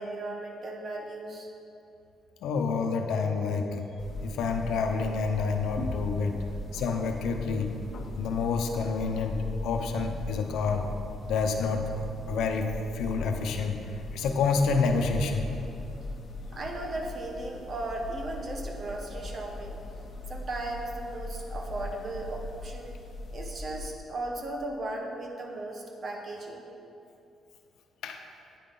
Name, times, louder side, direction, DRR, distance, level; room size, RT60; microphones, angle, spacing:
voice 1, 0.0-1.5 6.3-6.4 16.5-19.8 20.3-22.9 23.3-26.6, right 2 dB, 45° right, 2 dB, 1.4 m, -36 dB
voice 2, 2.4-3.8 4.2-6.4 6.7-7.7 8.2-10.9 11.3-13.8 14.1-15.5 28.0-28.2, left 4 dB, 80° left, 4 dB, 0.9 m, -28 dB
sound 1, 4.0-23.9, left 2 dB, 55° left, 0.9 m, -39 dB
9.4 x 9.4 x 3.9 m, 2.7 s
cardioid pair, 90°, 0 cm